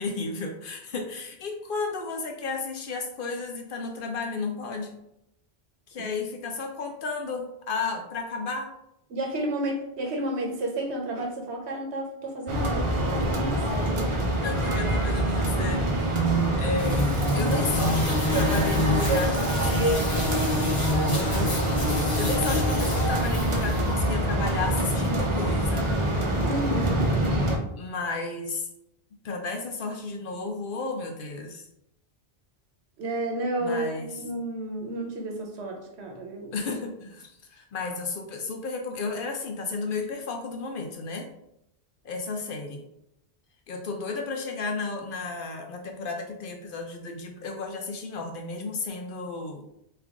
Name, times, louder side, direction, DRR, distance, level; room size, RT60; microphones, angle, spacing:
voice 1, 0.0-5.0 5.9-8.7 14.4-20.0 21.1-25.9 27.8-28.7 29.2-31.7 33.6-34.2 36.5-41.3 42.0-42.8 43.7-49.6, left 3 dB, 60° left, 4 dB, 0.6 m, -33 dB
voice 2, 9.1-14.2 17.2-17.9 18.3-18.4 19.1-19.3 19.6-20.0 26.4-27.1 33.0-36.5, right 1 dB, 80° right, 1 dB, 1.1 m, -31 dB
sound 1, 12.5-27.6, right 1 dB, 40° right, 0.4 m, -25 dB
sound 2, 16.8-23.9, left 2 dB, 30° left, 0.9 m, -28 dB
3.3 x 2.3 x 3.6 m, 0.82 s
omnidirectional pair, 1.1 m